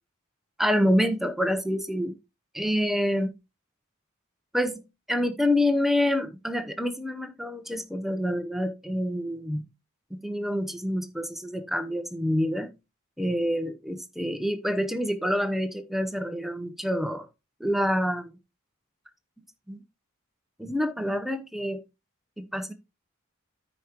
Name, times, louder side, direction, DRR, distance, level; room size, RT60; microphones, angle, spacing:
voice 1, 0.6-2.2 2.5-3.3 4.5-9.6 10.2-12.7 13.2-17.3 17.6-18.3 19.4-19.8 20.6-21.8 22.4-22.7, equal, ahead, 0.7 m, -27 dB
13.0 x 5.1 x 2.9 m
head